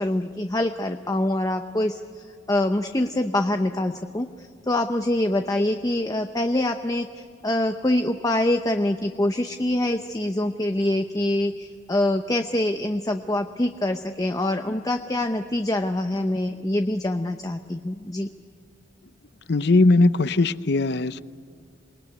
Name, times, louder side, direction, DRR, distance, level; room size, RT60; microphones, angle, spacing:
voice 1, 0.0-18.3, left 1 dB, 20° left, 0.7 m, -25 dB
voice 2, 19.5-21.2, left 2 dB, 60° left, 0.7 m, -19 dB
27.5 x 20.0 x 9.6 m
head